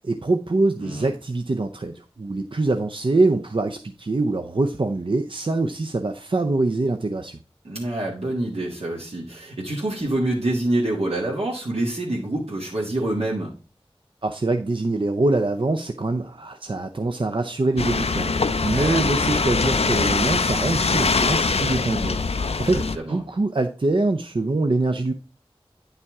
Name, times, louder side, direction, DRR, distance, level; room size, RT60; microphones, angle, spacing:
voice 1, 0.0-7.4 14.2-25.1, right 2 dB, 55° right, 5 dB, 0.6 m, -24 dB
voice 2, 7.6-13.5 18.7-19.0 22.7-23.2, right 1 dB, 80° right, -4 dB, 1.7 m, -26 dB
sound 1, 17.8-23.0, left 4 dB, 80° left, 0.5 m, -23 dB
9.6 x 5.7 x 3.6 m, 0.35 s
wide cardioid pair, 45°, 10 cm